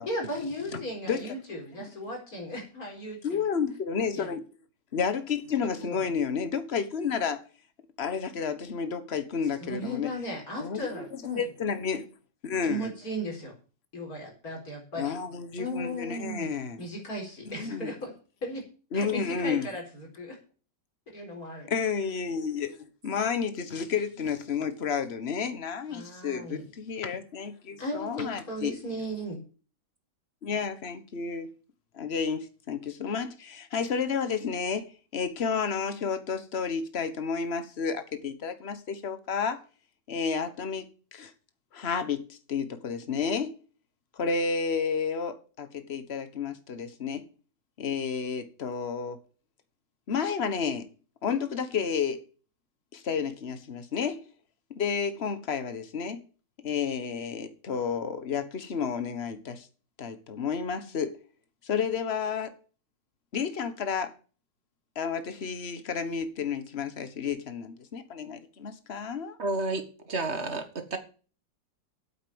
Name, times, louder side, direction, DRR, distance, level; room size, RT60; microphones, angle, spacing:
voice 1, 0.0-3.5 4.1-4.3 5.8-6.1 9.6-11.4 12.6-13.5 13.9-15.2 15.6-16.5 16.8-18.1 18.4-18.6 18.9-20.4 21.1-21.7 25.9-26.7 27.8-29.4, equal, 55° left, 5.0 m, -36 dB
voice 2, 3.2-4.4 4.9-7.4 8.0-10.1 10.6-12.0 12.4-12.9 15.0-16.8 17.6-17.9 18.9-19.7 21.7-28.7 30.4-31.5 31.9-39.6 40.1-40.9 41.1-41.3 41.7-43.6 44.2-47.3 47.8-49.2 50.1-50.9 51.2-52.2 52.9-54.2 54.7-56.2 56.6-59.7 60.0-61.2 61.6-62.5 63.3-64.1 64.9-69.4, left 6 dB, 40° left, 1.5 m, -31 dB
voice 3, 69.4-71.0, right 2 dB, 40° right, 1.9 m, -31 dB
8.5 x 8.4 x 7.1 m
omnidirectional pair, 1.9 m